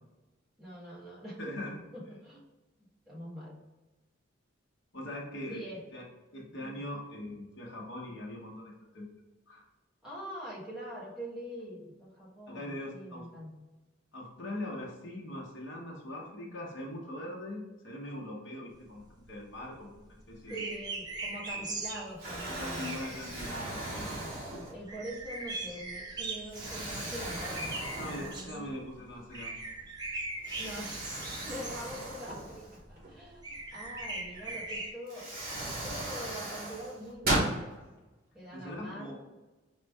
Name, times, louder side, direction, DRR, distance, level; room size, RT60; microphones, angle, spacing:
voice 1, 0.6-1.4 1.9-2.5 3.1-3.6 5.5-5.8 6.7-6.8 10.0-13.5 20.5-23.0 24.7-28.8 30.6-31.0 31.4-35.3 35.8-37.8 38.3-39.3, equal, 5° right, -9 dB, 1.3 m, -44 dB
voice 2, 1.4-1.8 4.9-5.6 5.9-6.0 6.3-9.1 9.5-9.6 12.5-13.3 14.1-20.7 22.6-24.1 27.9-29.6 38.5-39.2, left 1 dB, 65° left, -3 dB, 1.1 m, -41 dB
sound 1, 18.8-34.9, right 2 dB, 20° right, 0.5 m, -40 dB
Explosion, 21.5-21.9 22.2-25.0 25.6-25.8 26.5-28.8 29.1-29.2 30.4-33.1 34.5-34.6 35.1-37.6, right 1 dB, 45° right, 1.3 m, -37 dB
5.2 x 2.4 x 3.4 m, 1.1 s
head